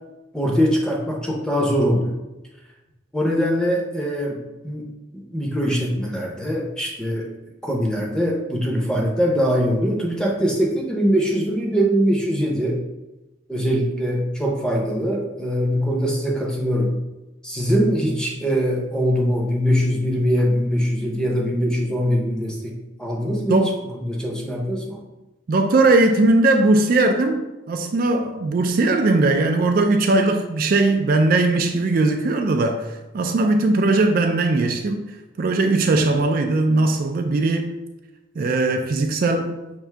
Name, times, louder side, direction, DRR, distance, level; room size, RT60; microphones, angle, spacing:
voice 1, 0.3-2.1 3.1-4.4 4.6-4.9 5.1-7.3 7.6-12.8 13.5-17.0 17.4-25.0, equal, 5° left, 0.7 m, -22 dB
voice 2, 25.5-35.1 35.4-37.8 38.4-39.6, right 2 dB, 50° right, 0.3 m, -19 dB
5.9 x 2.6 x 3.3 m
head